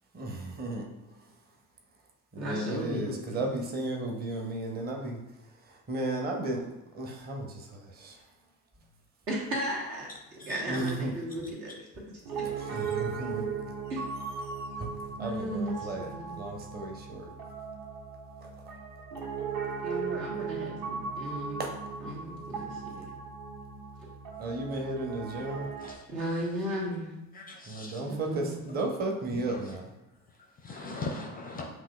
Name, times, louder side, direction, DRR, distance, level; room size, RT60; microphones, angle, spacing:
voice 1, 0.1-0.9 2.3-5.2 5.9-6.7 6.9-7.6 8.0-8.2 10.7-11.1 12.6-13.5 14.8-14.9 15.2-16.1 16.4-17.3 21.6-21.7 24.4-25.7 27.7-29.9, right 2 dB, 20° right, 2 dB, 0.7 m, -34 dB
voice 2, 2.4-3.5 9.3-10.1 10.4-11.7 12.3-12.4 13.9-14.0 15.2-16.4 19.8-21.6 22.0-23.0 26.1-27.1 28.0-28.6, right 1 dB, 70° right, -5 dB, 1.6 m, -35 dB
voice 3, 10.4-10.8 25.8-26.1 27.3-28.2 28.7-28.8 29.3-29.8 30.4-31.7, left 3 dB, 20° left, 1 dB, 0.4 m, -40 dB
Piano, 12.3-26.0, right 6 dB, 50° right, 0.9 m, -37 dB
7.4 x 2.6 x 2.3 m, 0.96 s
figure-of-eight pair, 60°, 50 cm